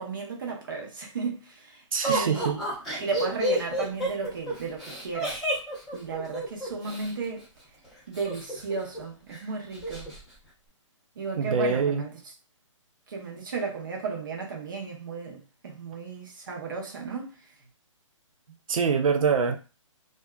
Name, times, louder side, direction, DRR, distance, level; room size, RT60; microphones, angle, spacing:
voice 1, 0.0-2.6 3.0-5.4 5.9-7.5 8.1-10.1 11.2-12.2 13.1-17.4, right 4 dB, 40° right, 0.6 m, -34 dB
voice 2, 1.9-2.6 11.4-12.0 18.7-19.6, right 5 dB, 85° right, 0.4 m, -24 dB
Laughter, 2.0-7.1 8.1-9.0 9.3-9.4 9.7-10.2, right 1 dB, ahead, 0.6 m, -30 dB
2.6 x 2.2 x 2.2 m
hypercardioid pair, 175°, 17 cm